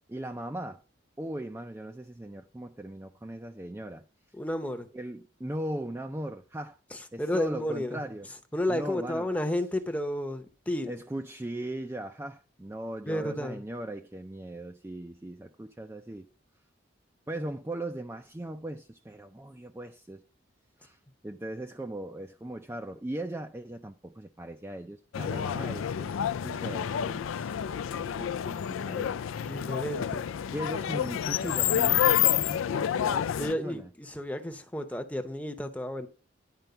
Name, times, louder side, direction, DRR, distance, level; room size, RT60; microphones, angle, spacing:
voice 1, 0.1-0.8 1.2-4.0 4.9-6.8 7.1-8.3 8.7-9.3 10.9-16.3 17.3-20.2 20.8-29.2 30.5-33.9, right 1 dB, 10° right, 0.3 m, -39 dB
voice 2, 4.3-4.9 6.9-11.0 13.1-13.6 29.3-30.2 33.4-36.1, left 1 dB, 5° left, 0.7 m, -32 dB
sound 1, 25.1-33.5, left 10 dB, 85° left, 0.4 m, -29 dB
10.5 x 4.5 x 6.7 m
head